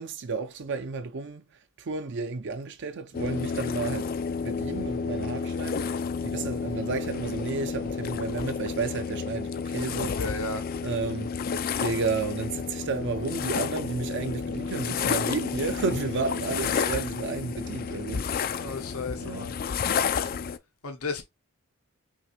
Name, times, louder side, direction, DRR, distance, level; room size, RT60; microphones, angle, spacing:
voice 1, 0.0-1.4 1.8-10.4 10.8-11.3 11.8-18.2 19.2-19.5, right 4 dB, 55° right, 0.5 m, -32 dB
sound 1, 3.1-20.6, left 6 dB, 40° left, 0.4 m, -31 dB
voice 2, 10.2-10.6 18.6-19.6 20.8-21.2, left 3 dB, 75° left, 0.9 m, -34 dB
5.7 x 2.5 x 2.9 m
head